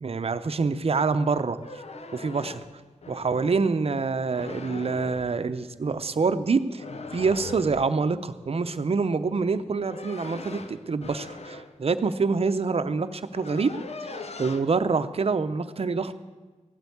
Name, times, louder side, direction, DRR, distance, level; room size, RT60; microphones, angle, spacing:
voice 1, 0.0-1.6 2.1-2.6 3.1-6.8 7.1-13.7 14.4-16.1, right 4 dB, 55° right, 10 dB, 0.7 m, -26 dB
sound 1, 1.5-3.6 4.3-5.4 6.8-8.0 9.5-11.8 12.7-12.8 13.0-14.6, left 3 dB, 60° left, 0.9 m, -40 dB
16.0 x 8.0 x 8.6 m, 1.3 s
wide cardioid pair, 110°, 12 cm